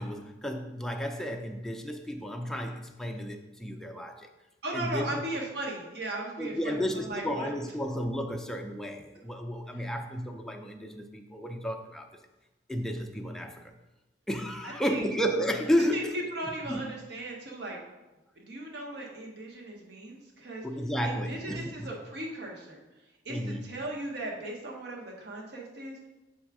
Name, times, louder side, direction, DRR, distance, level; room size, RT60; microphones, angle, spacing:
voice 1, 0.0-4.3 4.7-5.2 6.4-12.1 12.7-13.7 14.3-16.2 16.7-16.9 20.6-21.9 23.3-23.7, equal, 5° left, 3 dB, 0.4 m, -32 dB
voice 2, 4.6-7.5 14.6-15.0 15.9-17.8 18.4-20.7 21.0-22.8 23.2-26.0, right 1 dB, 65° right, 0 dB, 1.0 m, -37 dB
6.2 x 3.4 x 4.7 m, 1.0 s
head